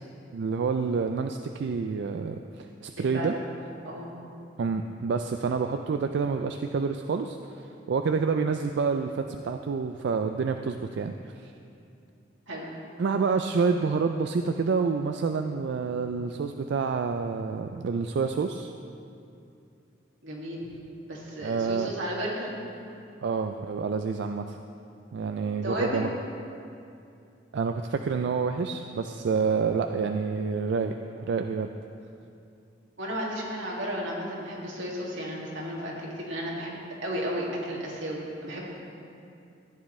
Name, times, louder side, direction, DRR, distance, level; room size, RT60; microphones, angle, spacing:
voice 1, 0.3-3.3 4.6-11.5 13.0-18.7 21.4-21.9 23.2-24.6 25.1-26.1 27.5-31.7, right 5 dB, 65° right, 6 dB, 0.3 m, -28 dB
voice 2, 3.0-3.3 3.8-4.1 12.5-12.7 20.2-20.7 21.1-22.5 25.6-26.0 33.0-38.6, equal, 90° right, -4 dB, 2.2 m, -33 dB
14.5 x 9.7 x 3.2 m, 2.6 s
head